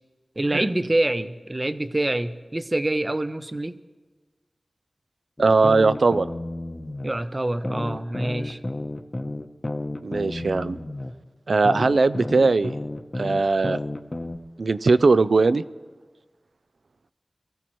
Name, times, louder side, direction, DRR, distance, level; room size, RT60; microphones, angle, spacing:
voice 1, 0.4-3.8 7.0-8.6, right 1 dB, 30° right, 12 dB, 0.6 m, -26 dB
sound 1, 5.4-7.1 7.6-11.1 11.6-14.4, left 1 dB, 30° left, 0.8 m, -31 dB
voice 2, 5.4-6.4 10.0-10.8 11.5-12.7 13.1-13.8 14.6-15.6, right 3 dB, 80° right, 15 dB, 0.4 m, -20 dB
23.0 x 15.0 x 3.1 m, 1.3 s
wide cardioid pair, 70°, 0 cm